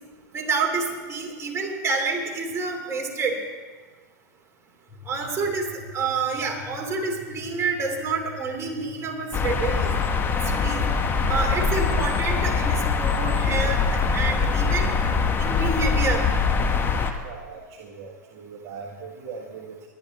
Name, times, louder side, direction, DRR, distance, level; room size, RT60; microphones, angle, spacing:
voice 1, 0.3-3.4 5.1-9.9 10.3-10.8 11.3-14.9 15.4-16.2, right 4 dB, 25° right, 2 dB, 2.8 m, -28 dB
sound 1, 4.9-15.1, left 2 dB, ahead, 4.9 m, -45 dB
sound 2, 9.3-17.1, left 5 dB, 20° left, 1.3 m, -23 dB
voice 2, 17.2-19.9, right 5 dB, 50° right, -1 dB, 1.5 m, -40 dB
20.5 x 10.5 x 4.2 m, 1.4 s
hypercardioid pair, 115°, 10 cm